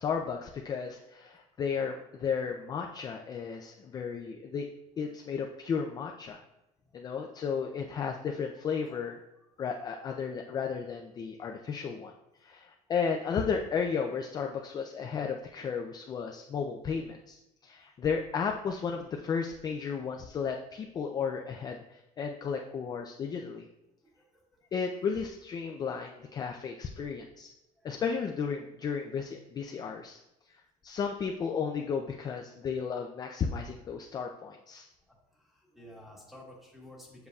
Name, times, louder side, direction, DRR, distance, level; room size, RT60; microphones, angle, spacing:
voice 1, 0.0-4.7 5.0-6.4 6.9-9.2 9.6-12.1 12.4-23.7 24.7-27.5 27.8-30.2 30.8-34.9, left 6 dB, 25° left, 2 dB, 0.4 m, -34 dB
voice 2, 35.4-37.3, left 1 dB, ahead, -3 dB, 1.2 m, -51 dB
7.4 x 6.7 x 2.3 m, 0.89 s
cardioid pair, 175°, 16 cm